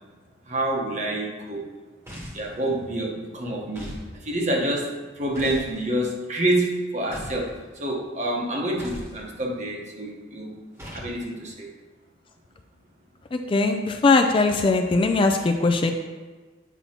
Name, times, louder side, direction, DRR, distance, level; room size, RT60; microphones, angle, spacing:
voice 1, 0.5-1.6 2.3-3.9 4.2-7.5 7.8-10.6 10.9-11.7, right 1 dB, 40° right, 0 dB, 1.1 m, -27 dB
sound 1, 2.1-2.5 3.7-4.1 5.3-5.7 7.1-7.5 8.8-9.2 10.8-11.2, equal, 15° right, 1.1 m, -38 dB
voice 2, 13.3-15.9, left 3 dB, 30° left, 5 dB, 0.3 m, -20 dB
8.3 x 5.5 x 2.9 m, 1.4 s
head